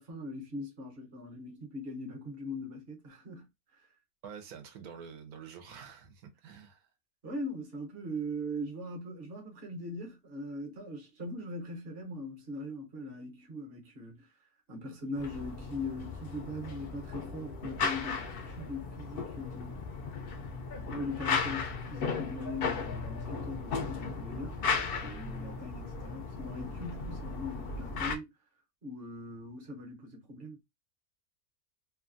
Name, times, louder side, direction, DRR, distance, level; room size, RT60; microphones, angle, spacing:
voice 1, 0.0-3.9 7.2-19.8 20.9-24.6 25.0-28.3 28.8-30.6, left 1 dB, 45° right, 1.0 m, -41 dB
voice 2, 4.2-6.9, right 7 dB, 90° right, 1.2 m, -48 dB
sound 1, 15.2-28.2, left 5 dB, 65° left, 0.5 m, -36 dB
3.0 x 2.2 x 2.5 m
omnidirectional pair, 1.5 m